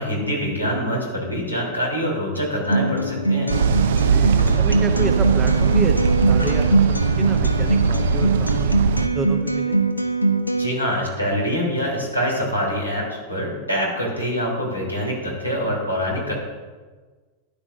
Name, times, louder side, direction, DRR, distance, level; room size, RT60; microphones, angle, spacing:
voice 1, 0.0-3.5 10.6-16.3, equal, 90° right, -3 dB, 3.4 m, -25 dB
Acoustic guitar, 2.7-10.7, right 2 dB, 85° left, 0.8 m, -22 dB
sound 1, 3.5-9.1, right 6 dB, 60° right, 0.5 m, -20 dB
voice 2, 3.9-6.8 7.2-8.8 9.1-9.8, right 3 dB, 20° right, 6 dB, 0.8 m, -30 dB
13.0 x 11.0 x 2.6 m, 1.4 s
figure-of-eight pair, 90°, 0 cm